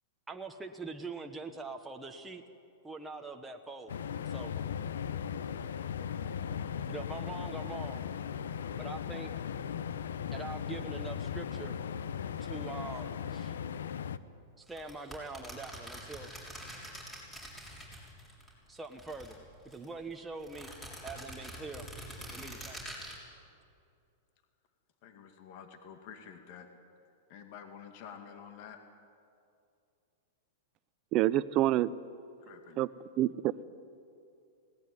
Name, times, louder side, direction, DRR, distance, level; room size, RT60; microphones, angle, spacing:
voice 1, 0.3-2.4 2.8-4.0 4.2-4.5 6.9-8.1 8.7-9.3 10.3-11.8 12.4-13.5 14.6-16.3 18.7-19.4 19.6-20.7 21.0-21.9 22.3-22.9, right 3 dB, 10° right, 2 dB, 1.1 m, -43 dB
sound 1, 3.9-14.2, left 8 dB, 85° left, 0.8 m, -37 dB
sound 2, 14.7-18.5 18.8-19.9 20.4-23.2, equal, 10° left, 6.5 m, -45 dB
voice 2, 25.0-26.7 27.3-28.8 32.4-32.8, left 7 dB, 50° left, 5 dB, 2.2 m, -49 dB
voice 3, 31.1-31.9 32.8-32.9 33.2-33.6, right 14 dB, 40° right, 14 dB, 0.7 m, -27 dB
19.5 x 18.0 x 9.8 m, 2.5 s
hypercardioid pair, 130°, 0 cm